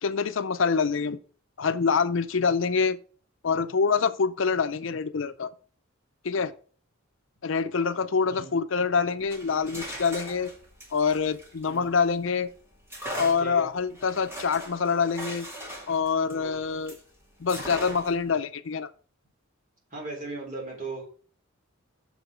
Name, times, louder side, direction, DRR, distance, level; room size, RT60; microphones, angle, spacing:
voice 1, 0.0-1.2 1.6-3.0 3.4-5.5 6.2-6.5 7.4-10.5 10.9-12.5 13.1-15.5 15.9-17.0 17.4-18.9, left 5 dB, 65° left, 0.5 m, -26 dB
sound 1, 9.2-12.2 12.9-17.1 17.5-18.3, equal, 15° right, 2.2 m, -40 dB
voice 2, 13.4-13.7 16.3-16.6 19.9-21.1, right 2 dB, 40° right, 3.6 m, -37 dB
6.9 x 5.1 x 6.1 m
head